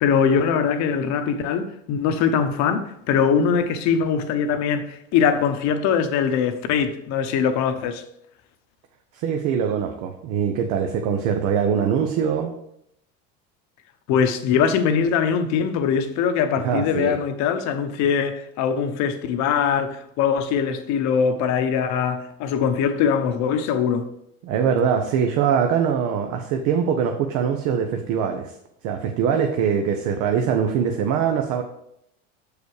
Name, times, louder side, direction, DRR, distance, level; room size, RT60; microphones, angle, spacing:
voice 1, 0.0-8.0 14.1-24.1, left 7 dB, 60° left, 0.9 m, -22 dB
voice 2, 9.1-12.5 16.6-17.2 24.4-28.5 28.8-31.6, right 7 dB, 65° right, 0.8 m, -22 dB
6.6 x 4.9 x 4.7 m
supercardioid pair, 115°, 32 cm